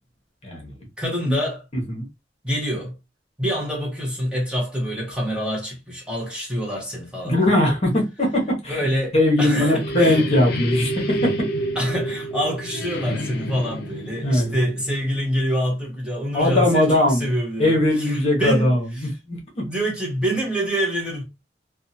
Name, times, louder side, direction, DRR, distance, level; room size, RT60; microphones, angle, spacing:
voice 1, 0.4-0.7 1.3-1.4 1.7-2.1 7.2-8.9 9.1-11.5 14.2-14.6 16.3-17.3 17.6-19.6, left 1 dB, 35° left, 1.0 m, -20 dB
voice 2, 1.0-1.6 2.4-2.9 3.4-7.4 8.7-10.2 11.8-18.7 19.6-21.2, equal, 5° right, 0.8 m, -26 dB
sound 1, 9.0-15.7, equal, 60° left, 0.6 m, -29 dB
2.7 x 2.2 x 2.6 m
head